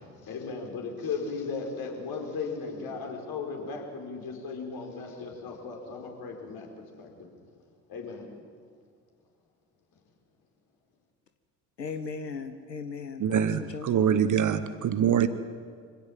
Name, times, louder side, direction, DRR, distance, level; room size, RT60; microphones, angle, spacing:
voice 1, 0.2-6.7 7.0-7.3 7.9-8.2, left 4 dB, 45° left, 1 dB, 4.9 m, -36 dB
voice 2, 11.8-13.9, left 5 dB, 90° left, 9 dB, 0.8 m, -37 dB
voice 3, 13.2-15.3, right 8 dB, 40° right, 12 dB, 1.2 m, -24 dB
25.0 x 16.5 x 7.7 m, 2.1 s
figure-of-eight pair, 50°, 48 cm